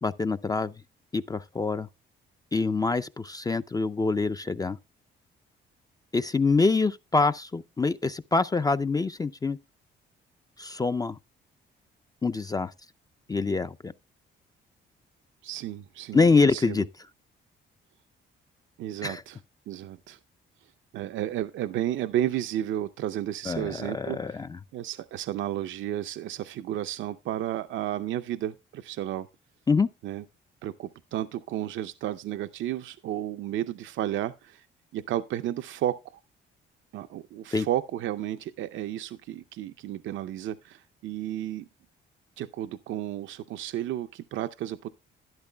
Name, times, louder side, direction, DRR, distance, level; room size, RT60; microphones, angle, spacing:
voice 1, 0.0-0.7 1.1-1.9 2.5-4.8 6.1-9.6 10.6-11.2 12.2-12.7 13.3-13.9 16.1-16.8 19.0-19.2 23.5-24.6 29.7-29.9 37.5-37.7, left 4 dB, 20° left, 0.4 m, -25 dB
voice 2, 15.4-16.9 18.8-19.4 19.7-20.2 20.9-24.4 24.7-29.3 30.0-30.2 30.6-34.7 34.9-36.2 36.9-41.7 42.4-44.9, right 12 dB, 75° right, 0.5 m, -32 dB
12.0 x 10.5 x 2.2 m
cardioid pair, 90°, 20 cm